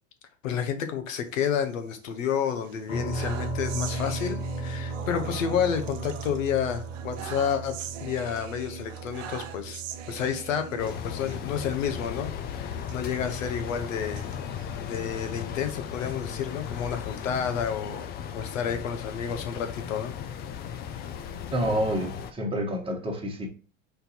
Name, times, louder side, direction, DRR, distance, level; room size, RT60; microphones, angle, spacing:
voice 1, 0.4-9.8 10.1-14.2 14.8-18.1 18.3-20.1, left 8 dB, 80° left, 0.9 m, -30 dB
sound 1, 1.3-2.2 2.6-11.4 11.7-11.9 12.1-12.3 12.8-15.3 15.8-17.2, right 9 dB, 75° right, 0.7 m, -43 dB
sound 2, 2.9-16.6, right 2 dB, 50° left, 1.2 m, -37 dB
sound 3, 10.8-22.3, left 8 dB, 25° left, 0.4 m, -36 dB
voice 2, 21.5-23.5, equal, 15° right, 1.2 m, -28 dB
4.3 x 2.7 x 4.2 m
hypercardioid pair, 105°, 39 cm